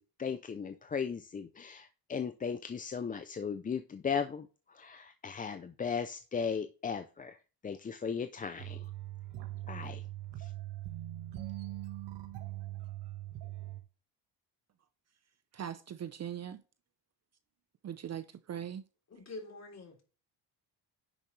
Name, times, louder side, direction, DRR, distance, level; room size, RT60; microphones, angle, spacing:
voice 1, 0.0-7.4 7.6-8.9 9.7-10.0 10.4-10.5, left 6 dB, 20° left, 0.4 m, -37 dB
sound 1, 8.6-13.8, right 15 dB, 65° right, 1.5 m, -41 dB
voice 2, 15.5-16.6 17.8-18.8, right 9 dB, 35° right, 0.6 m, -40 dB
voice 3, 19.1-20.0, left 2 dB, 35° left, 3.4 m, -46 dB
10.0 x 6.9 x 3.2 m
cardioid pair, 125°, 44 cm